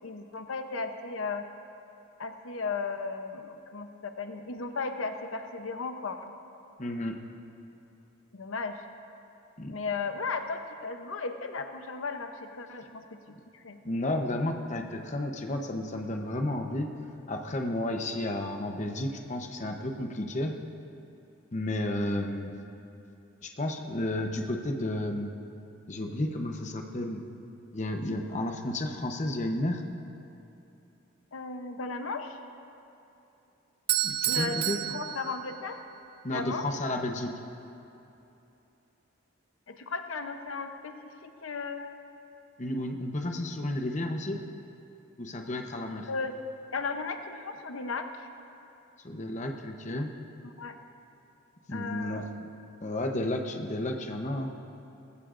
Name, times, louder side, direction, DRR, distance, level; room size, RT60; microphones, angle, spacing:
voice 1, 0.0-1.4 2.2-6.3 8.3-8.8 9.7-13.0 13.5-13.8 31.3-32.4 34.3-35.8 36.3-36.7 39.7-41.9 46.1-46.4 46.7-48.3 50.4-50.8 51.7-52.3, left 4 dB, 85° left, 6 dB, 0.8 m, -35 dB
voice 2, 6.8-7.1 9.6-9.7 13.8-16.9 17.3-20.5 21.5-22.5 23.4-25.3 25.9-27.2 27.7-29.8 34.0-34.8 36.2-37.3 42.6-44.4 45.2-46.1 49.0-50.1 51.7-52.2 52.8-54.5, left 1 dB, 35° left, 3 dB, 0.8 m, -32 dB
Bell / Doorbell, 33.9-36.0, right 12 dB, 50° right, 0.3 m, -30 dB
19.0 x 15.0 x 2.5 m, 2.9 s
head